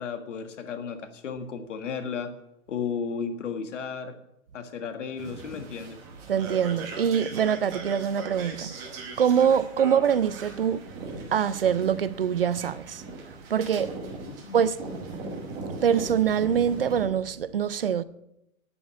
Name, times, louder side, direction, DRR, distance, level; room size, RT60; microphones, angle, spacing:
voice 1, 0.0-2.3 2.7-4.1 4.5-6.0 14.3-14.6, left 6 dB, 60° left, 1.7 m, -34 dB
sound 1, 5.2-17.1, right 3 dB, 10° right, 0.9 m, -39 dB
voice 2, 6.3-8.8 9.2-10.9 11.3-14.0 14.5-14.8 15.7-18.0, right 8 dB, 45° right, 0.4 m, -24 dB
9.9 x 9.4 x 8.5 m
hypercardioid pair, 175°, 42 cm